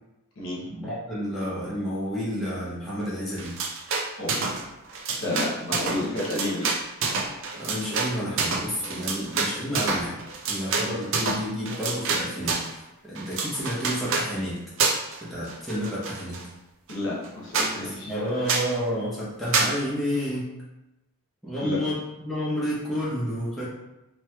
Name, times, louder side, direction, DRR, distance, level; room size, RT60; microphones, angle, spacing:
voice 1, 0.7-3.6 7.6-10.2 10.5-12.6 13.0-14.6 15.2-16.5 17.8-20.5 21.4-23.7, equal, ahead, -9 dB, 0.7 m, -30 dB
sound 1, 3.4-4.6 4.9-12.7 13.2-14.3 14.8-15.2 15.5-16.4 16.9-17.0 17.2-17.3 17.5-17.7 18.5-18.7 19.5-19.7, right 4 dB, 60° right, 0.4 m, -27 dB
voice 2, 4.9-6.7 16.9-18.1 21.6-21.8, left 1 dB, 60° left, -4 dB, 0.8 m, -30 dB
3.0 x 2.8 x 2.2 m, 0.96 s
head